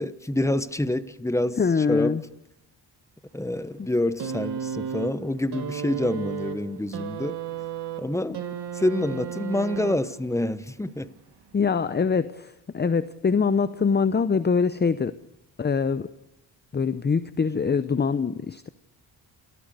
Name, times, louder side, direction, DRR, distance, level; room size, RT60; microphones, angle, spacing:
voice 1, 0.0-1.6 1.9-2.2 3.3-7.4 8.0-8.4 8.7-11.1, left 1 dB, 5° left, 1.2 m, -27 dB
voice 2, 1.6-2.2 3.8-3.9 11.5-15.2 15.6-16.1 16.7-18.7, left 5 dB, 25° left, 0.7 m, -24 dB
sound 1, 4.2-10.4 11.4-11.5, right 8 dB, 60° right, 1.8 m, -34 dB
28.0 x 14.5 x 6.7 m
supercardioid pair, 60°, 45 cm